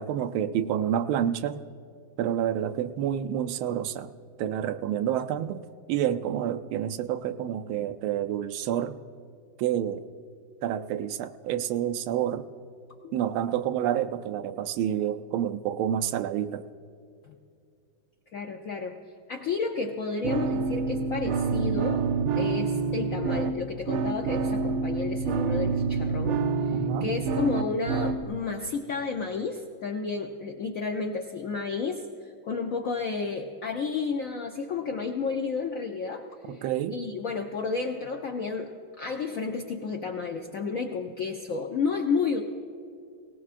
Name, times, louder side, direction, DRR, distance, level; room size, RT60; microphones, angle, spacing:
voice 1, 0.0-1.6 2.2-4.1 4.4-5.6 5.9-9.0 9.6-10.1 10.6-12.5 13.1-16.6 26.7-27.1 36.5-37.0, right 10 dB, 90° right, 10 dB, 1.4 m, -28 dB
voice 2, 18.3-19.0 19.3-22.1 22.3-26.7 27.0-38.7 39.0-42.4, left 4 dB, 75° left, 3 dB, 0.7 m, -31 dB
sound 1, 20.2-28.2, right 5 dB, 70° right, 0.9 m, -27 dB
19.0 x 18.5 x 2.5 m, 2.4 s
omnidirectional pair, 2.2 m